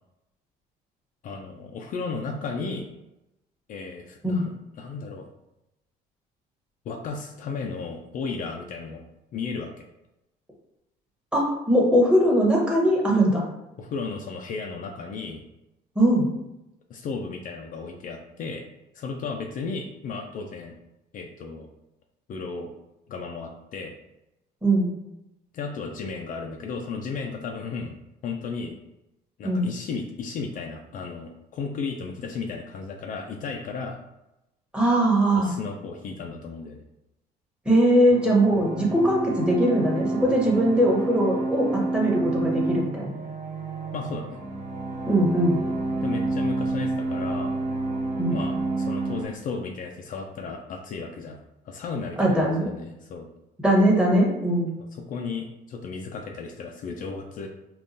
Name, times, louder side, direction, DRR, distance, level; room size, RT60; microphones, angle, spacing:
voice 1, 1.2-2.9 3.7-5.3 6.9-9.0 9.3-9.8 13.8-15.4 16.9-18.7 18.9-20.8 21.1-21.7 22.3-22.7 23.1-23.9 25.5-27.9 28.2-28.8 29.4-34.0 35.4-36.8 43.9-44.4 46.0-47.5 48.3-51.4 51.7-53.3 54.9-57.5, left 4 dB, 50° left, 2 dB, 0.4 m, -34 dB
voice 2, 11.3-13.4 16.0-16.3 24.6-24.9 29.4-29.7 34.7-35.5 37.6-43.1 45.1-45.6 48.2-48.4 52.2-52.7 53.6-54.7, right 1 dB, 5° right, -3 dB, 1.0 m, -21 dB
sound 1, 38.1-49.3, right 2 dB, 50° right, 0.9 m, -29 dB
3.6 x 2.3 x 2.6 m, 0.91 s
cardioid pair, 110°, 17 cm